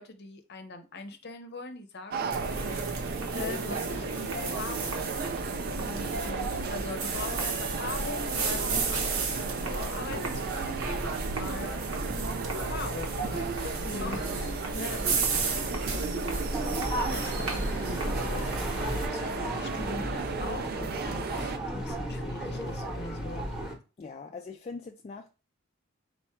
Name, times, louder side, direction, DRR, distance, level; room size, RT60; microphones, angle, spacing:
voice 1, 0.0-5.1 6.2-11.8 12.6-23.5, left 3 dB, 50° left, 0.7 m, -42 dB
sound 1, 2.1-21.6, right 5 dB, 45° right, 0.4 m, -36 dB
sound 2, 2.3-19.1, right 3 dB, 80° right, 0.9 m, -33 dB
voice 2, 5.8-6.6 10.1-10.4 13.8-14.5 24.0-25.3, left 3 dB, 30° left, 0.3 m, -42 dB
sound 3, 16.5-23.7, right 1 dB, 5° right, 0.9 m, -35 dB
4.2 x 2.3 x 4.3 m
head